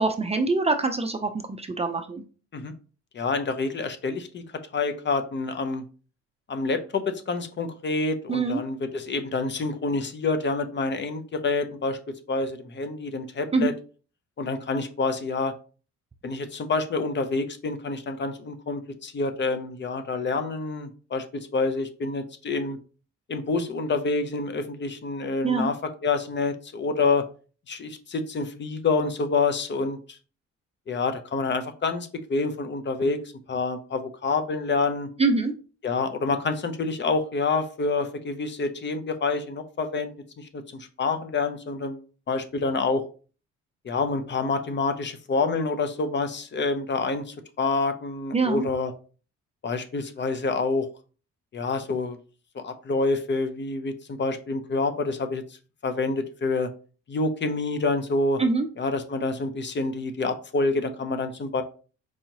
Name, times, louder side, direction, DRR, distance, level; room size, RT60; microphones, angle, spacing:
voice 1, 0.0-2.2 8.3-8.6 13.5-13.7 25.4-25.7 35.2-35.5 48.3-48.7 58.4-58.7, right 3 dB, 20° right, 6 dB, 0.4 m, -24 dB
voice 2, 3.1-4.4 4.7-5.8 6.5-12.0 12.3-13.7 14.4-15.5 16.2-22.8 23.3-25.8 26.0-27.2 27.7-30.2 30.9-33.2 33.5-35.1 35.8-40.1 40.4-43.0 43.8-48.9 49.6-50.9 51.5-52.2 52.5-55.4 55.8-56.7 57.1-58.4 58.8-61.6, left 3 dB, 40° left, 8 dB, 0.6 m, -27 dB
4.7 x 2.9 x 2.7 m, 0.38 s
cardioid pair, 90°, 30 cm